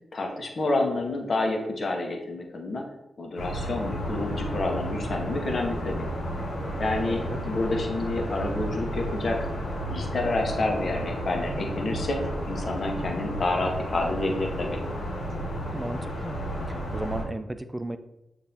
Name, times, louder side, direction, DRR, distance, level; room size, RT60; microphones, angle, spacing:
voice 1, 0.1-2.8 3.2-6.1 6.8-9.4 9.9-12.2 12.5-14.8, left 2 dB, 60° left, 2 dB, 0.8 m, -28 dB
sound 1, 3.4-17.2, equal, 85° left, 1.1 m, -32 dB
voice 2, 7.0-7.4 15.7-16.4 16.7-18.0, right 1 dB, 20° right, 10 dB, 0.4 m, -35 dB
6.6 x 2.6 x 2.7 m, 0.93 s
supercardioid pair, 40°, 0 cm